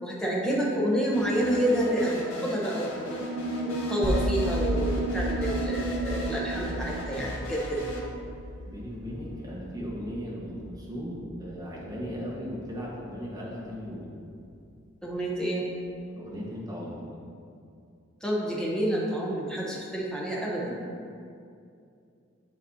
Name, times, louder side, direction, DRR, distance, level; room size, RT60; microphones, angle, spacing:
voice 1, 0.0-3.2 3.6-7.9 15.0-15.7 18.2-20.8, right 1 dB, 5° left, -5 dB, 0.9 m, -29 dB
sound 1, 1.1-8.0, left 2 dB, 85° left, 1.4 m, -40 dB
sound 2, 3.0-9.0, right 3 dB, 60° right, 1.0 m, -34 dB
sound 3, 4.0-14.0, equal, 35° left, 0.7 m, -35 dB
voice 2, 8.7-14.1 16.1-17.1, equal, 15° right, -6 dB, 1.3 m, -37 dB
10.0 x 4.1 x 2.8 m, 2.4 s
head